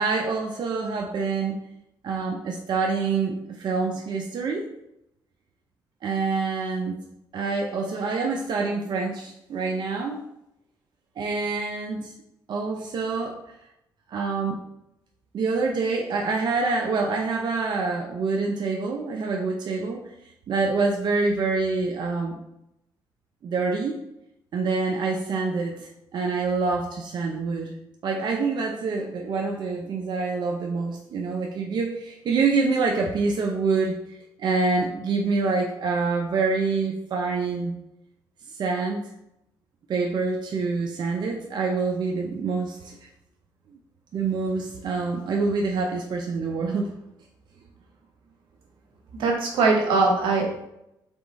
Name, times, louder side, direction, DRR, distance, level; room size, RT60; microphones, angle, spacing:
voice 1, 0.0-1.6 2.0-4.7 6.0-7.0 7.3-10.3 11.2-12.1 12.5-13.4 14.1-14.6 15.3-20.0 20.5-22.4 23.4-23.9 24.5-27.8 28.0-37.7 38.6-39.0 39.9-42.9 44.1-46.9, right 4 dB, 60° right, 0 dB, 0.6 m, -26 dB
voice 2, 49.2-50.7, right 3 dB, 90° right, 1 dB, 1.0 m, -21 dB
3.5 x 3.4 x 4.1 m, 0.84 s
cardioid pair, 75°, 8 cm